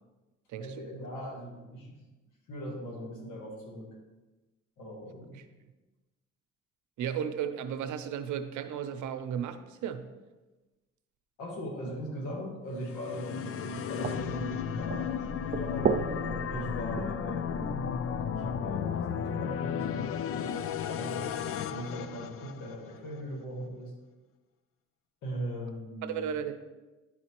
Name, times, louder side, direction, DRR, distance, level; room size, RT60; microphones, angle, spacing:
voice 1, 0.6-2.0 2.5-4.0 4.8-5.4 11.4-16.1 16.5-17.8 18.3-21.4 21.6-23.9 25.2-26.4, equal, 80° left, -1 dB, 1.7 m, -39 dB
voice 2, 7.0-10.1 26.0-26.7, right 8 dB, 75° right, 9 dB, 0.7 m, -34 dB
sound 1, 12.7-23.0, left 8 dB, 50° left, 0.4 m, -34 dB
sound 2, 14.0-18.9, right 6 dB, 30° right, 0.4 m, -36 dB
10.5 x 4.2 x 2.9 m, 1.2 s
cardioid pair, 90°, 30 cm